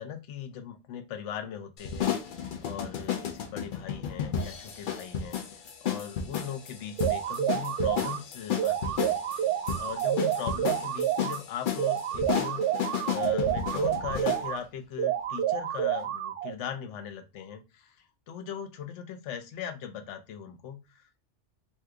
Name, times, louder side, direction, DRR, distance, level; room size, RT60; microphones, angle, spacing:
voice 1, 0.0-2.2 2.6-9.2 9.8-21.2, left 8 dB, 85° left, 7 dB, 0.9 m, -39 dB
sound 1, 1.8-14.5, left 8 dB, 60° left, 0.6 m, -33 dB
sound 2, 7.0-8.2 8.6-11.4 11.8-14.6 15.0-16.6, right 10 dB, 80° right, 0.9 m, -29 dB
2.8 x 2.2 x 3.4 m, 0.26 s
omnidirectional pair, 1.2 m